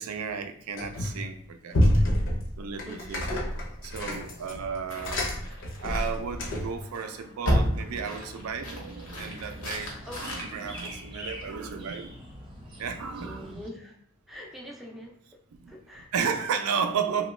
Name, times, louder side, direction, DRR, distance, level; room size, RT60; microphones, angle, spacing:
voice 1, 0.0-1.8 2.6-3.2 3.8-5.3 5.8-9.9 10.2-12.1 12.8-13.5 15.6-15.7 16.1-17.3, right 6 dB, 90° right, 7 dB, 0.4 m, -33 dB
sound 1, 0.8-1.3 1.7-6.8, left 1 dB, 60° left, 0.6 m, -28 dB
voice 2, 2.8-3.2 10.0-10.2 11.2-11.4 13.2-14.0 14.3-15.2 15.7-16.1, equal, ahead, -1 dB, 0.4 m, -44 dB
sound 2, 3.3-11.7, equal, 85° left, 0.9 m, -34 dB
sound 3, 7.9-13.7, equal, 20° right, 0.7 m, -44 dB
3.0 x 2.2 x 3.1 m, 0.66 s
head